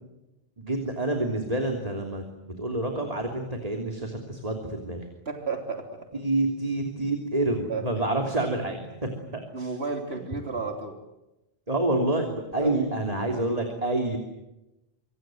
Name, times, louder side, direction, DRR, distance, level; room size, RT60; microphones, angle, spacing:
voice 1, 0.6-5.0 6.1-9.7 11.7-14.2, right 2 dB, 35° right, 3 dB, 3.4 m, -28 dB
voice 2, 5.3-5.9 7.7-8.0 9.5-11.0 12.6-12.9, right 4 dB, 85° right, 4 dB, 3.5 m, -32 dB
26.5 x 25.5 x 7.9 m, 0.95 s
omnidirectional pair, 1.0 m